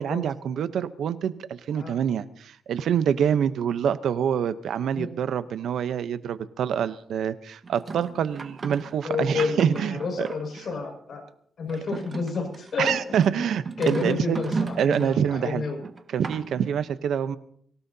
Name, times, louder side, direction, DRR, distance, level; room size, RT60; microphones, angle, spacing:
voice 1, 0.0-10.3 12.8-14.5 14.8-15.7 16.1-17.4, right 8 dB, 80° right, 13 dB, 0.8 m, -26 dB
sound 1, 7.6-10.7 11.7-15.2 15.8-16.7, right 4 dB, 35° right, 1.3 m, -35 dB
voice 2, 9.0-11.2 11.6-12.9 13.3-13.5 13.8-15.8, left 4 dB, 55° left, 2 dB, 5.8 m, -30 dB
24.5 x 17.0 x 2.8 m, 0.63 s
cardioid pair, 120°, 0 cm